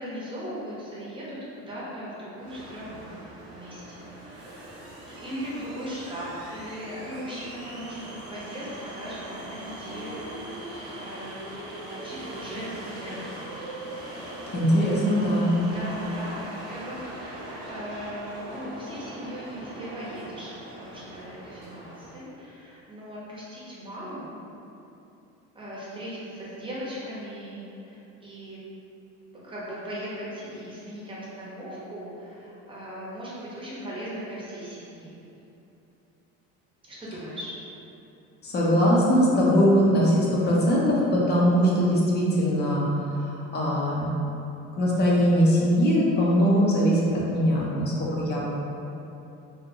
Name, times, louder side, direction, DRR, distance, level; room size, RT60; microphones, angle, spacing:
voice 1, 0.0-3.1 3.5-11.6 11.8-13.5 15.7-24.3 25.5-28.6 29.3-35.2 36.8-37.5, equal, 15° right, -8 dB, 0.7 m, -38 dB
sound 1, 2.4-22.2, right 1 dB, 90° right, 0.8 m, -41 dB
voice 2, 14.5-15.6 38.4-42.9 43.1-44.1 44.8-48.4, equal, 30° left, -5 dB, 0.6 m, -21 dB
2.6 x 2.1 x 2.7 m, 2.9 s
cardioid pair, 120°, 32 cm